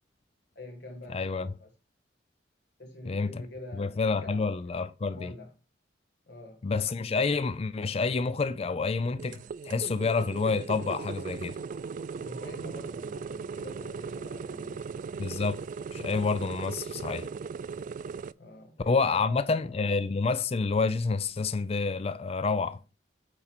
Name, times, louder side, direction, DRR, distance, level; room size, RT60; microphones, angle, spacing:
voice 1, 0.5-1.7 2.8-4.8 5.1-5.5 6.3-6.6 12.1-14.9 18.4-19.8, left 2 dB, 60° left, 1.3 m, -46 dB
voice 2, 1.1-1.5 3.1-3.3 3.8-5.3 6.6-11.6 15.2-15.6 15.9-17.3 18.9-22.8, left 4 dB, 30° left, 0.4 m, -28 dB
sound 1, 9.2-18.3, right 5 dB, 45° right, 0.3 m, -38 dB
8.8 x 4.4 x 4.3 m
head